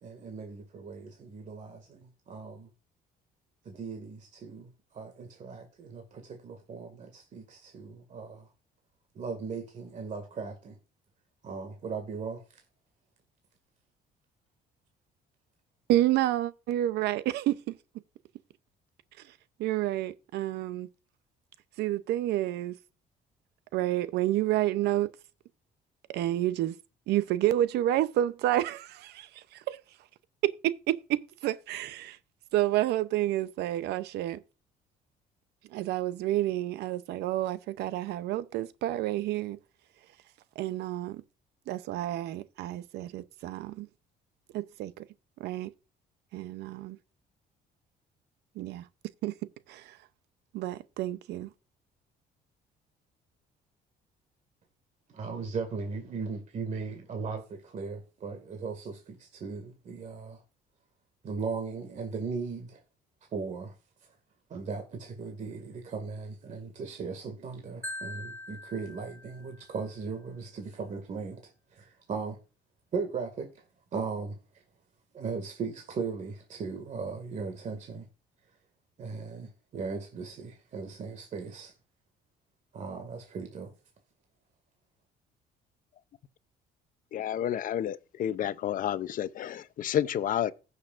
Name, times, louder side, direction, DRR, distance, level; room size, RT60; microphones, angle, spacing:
voice 1, 0.0-2.7 3.6-8.5 9.1-10.8 11.4-12.6 55.1-60.4 61.2-62.8 63.3-63.7 64.5-72.4 72.9-73.6 73.9-74.6 75.1-78.0 79.0-81.7 82.7-83.7, right 5 dB, 45° right, 2.1 m, -38 dB
voice 2, 15.9-17.7 19.6-20.9 21.8-22.7 23.7-25.1 26.1-26.8 27.1-29.8 30.4-32.2 32.5-34.4 35.7-39.6 40.6-41.2 41.7-43.9 44.5-45.0 45.4-45.7 46.3-47.0 48.6-48.8 49.2-49.3 49.7-50.0 50.5-51.5, right 14 dB, 80° right, 0.7 m, -29 dB
Marimba xylophone, 67.8-69.9, left 1 dB, 10° left, 1.7 m, -42 dB
voice 3, 87.1-90.5, left 10 dB, 55° left, 0.6 m, -30 dB
16.0 x 6.6 x 2.5 m
cardioid pair, 110°, 17 cm